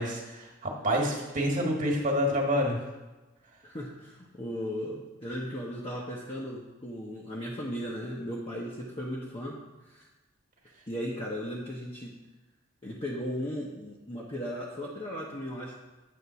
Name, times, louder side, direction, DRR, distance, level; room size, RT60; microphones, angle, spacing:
voice 1, 0.0-2.8, equal, 40° right, 0 dB, 1.6 m, -28 dB
voice 2, 3.6-10.1 10.9-12.1 12.8-15.7, equal, 30° left, -5 dB, 0.9 m, -36 dB
9.3 x 3.6 x 6.9 m, 1.1 s
head